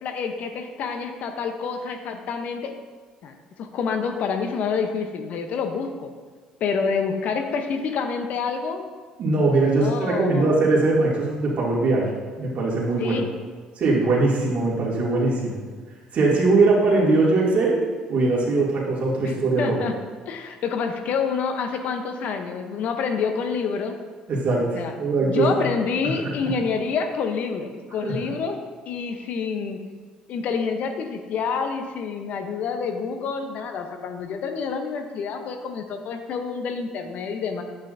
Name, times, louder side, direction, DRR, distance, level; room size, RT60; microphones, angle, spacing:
voice 1, 0.0-2.7 3.2-6.1 6.6-8.8 9.8-10.6 13.0-13.3 19.3-19.9 20.3-23.9 24.7-24.9 25.2-28.6 28.9-29.8 30.3-37.6, left 5 dB, 60° left, 6 dB, 0.8 m, -28 dB
voice 2, 9.2-12.0 12.4-13.2 13.8-15.6 16.1-17.8 18.1-19.8 24.3-25.6 28.0-28.1, right 3 dB, 50° right, -4 dB, 2.5 m, -21 dB
9.4 x 8.0 x 2.7 m, 1.5 s
hypercardioid pair, 60°, 3 cm